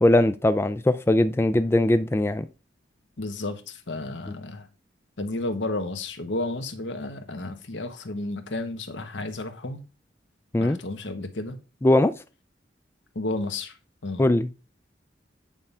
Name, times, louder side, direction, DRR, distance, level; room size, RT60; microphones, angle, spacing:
voice 1, 0.0-2.5 10.5-10.8 11.8-12.1 14.2-14.5, left 1 dB, 15° left, 0.3 m, -20 dB
voice 2, 3.2-4.7 5.2-9.8 10.6-11.6 13.1-13.8 14.0-14.2, left 2 dB, 85° left, 1.2 m, -32 dB
8.8 x 3.6 x 5.5 m
head